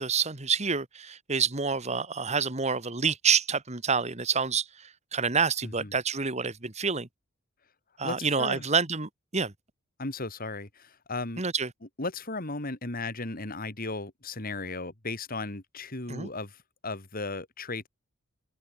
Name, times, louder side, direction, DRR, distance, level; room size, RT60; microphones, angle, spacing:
voice 1, 0.0-4.7 5.1-7.1 8.0-9.5 11.4-11.7 16.1-16.3, right 5 dB, 35° right, 1.8 m, -27 dB
voice 2, 5.6-5.9 8.0-8.7 10.0-11.4 12.0-16.6 16.8-17.9, left 3 dB, 45° left, 2.9 m, -35 dB
head